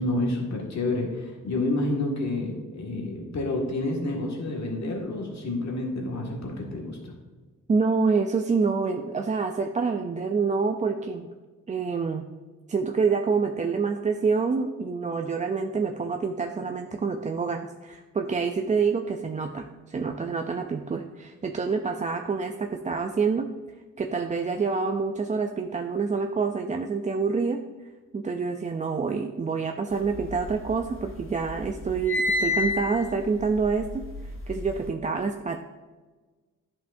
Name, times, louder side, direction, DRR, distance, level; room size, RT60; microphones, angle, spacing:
voice 1, 0.0-7.1, left 2 dB, 55° left, 0 dB, 1.8 m, -29 dB
voice 2, 7.7-11.3 11.7-12.3 12.7-23.5 24.0-27.6 28.1-34.0 34.5-35.6, right 5 dB, 25° right, 4 dB, 0.4 m, -27 dB
sound 1, 30.1-31.1 31.4-34.8, left 3 dB, 40° left, 0.8 m, -30 dB
10.5 x 5.6 x 2.6 m, 1.3 s
cardioid pair, 100°, 32 cm